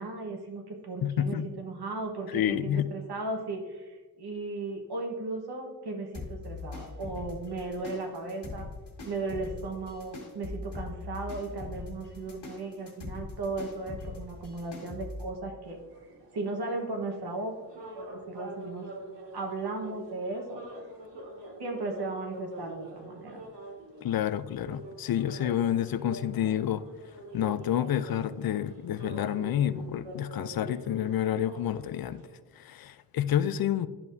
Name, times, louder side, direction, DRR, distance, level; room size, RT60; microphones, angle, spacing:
voice 1, 0.0-8.7 9.0-15.8 16.3-17.5 17.9-18.9 19.3-20.6 21.6-23.4, right 2 dB, 65° right, 1 dB, 1.3 m, -36 dB
voice 2, 1.0-1.5 2.3-2.9 24.0-26.8 27.3-32.2 32.5-33.9, left 10 dB, 60° left, 15 dB, 0.5 m, -29 dB
sound 1, 6.1-15.3, left 3 dB, 75° left, 1.8 m, -42 dB
sound 2, 15.7-32.4, right 2 dB, 90° right, 1.5 m, -45 dB
10.5 x 5.7 x 2.7 m, 1.3 s
cardioid pair, 80°, 42 cm